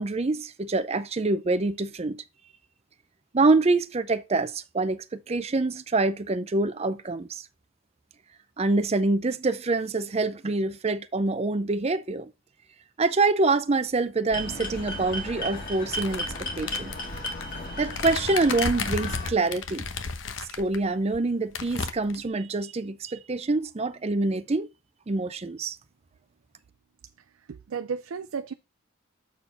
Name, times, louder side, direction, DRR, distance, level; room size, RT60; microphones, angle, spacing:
voice 1, 0.0-2.2 3.3-7.4 8.6-12.3 13.0-16.9 17.8-19.8 20.6-24.7 25.1-25.8, right 3 dB, 30° right, 0.5 m, -26 dB
sound 1, 14.3-19.3, left 1 dB, 45° left, 1.9 m, -34 dB
sound 2, 15.9-20.8 21.1-21.2 21.5-22.3, left 4 dB, 65° left, 1.0 m, -34 dB
voice 2, 27.2-28.5, right 6 dB, 90° right, 0.5 m, -34 dB
7.1 x 4.3 x 5.5 m
head